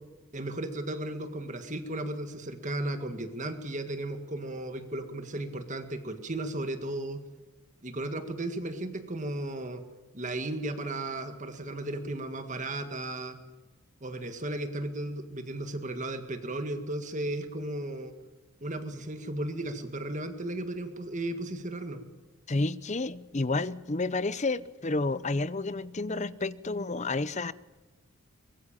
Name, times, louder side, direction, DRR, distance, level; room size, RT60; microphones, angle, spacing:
voice 1, 0.3-7.2 7.8-9.8 10.1-13.4 14.0-18.1 18.6-22.0, right 1 dB, 35° right, 8 dB, 1.8 m, -35 dB
voice 2, 22.5-27.5, left 3 dB, 30° left, 17 dB, 0.7 m, -30 dB
24.0 x 22.0 x 7.4 m, 1.2 s
head